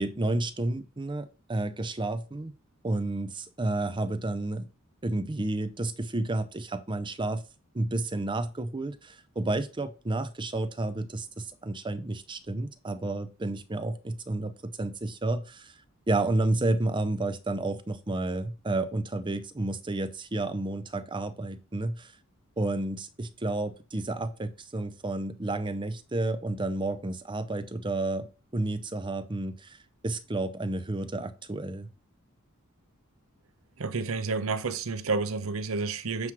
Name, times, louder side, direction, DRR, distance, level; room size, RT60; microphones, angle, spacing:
voice 1, 0.0-2.5 2.8-4.7 5.0-7.4 7.7-15.7 16.1-22.1 22.6-28.3 28.5-29.8 30.0-31.9, right 2 dB, 20° right, 0.6 m, -31 dB
voice 2, 33.8-36.3, right 4 dB, 70° right, 0.7 m, -30 dB
9.5 x 3.2 x 6.0 m
head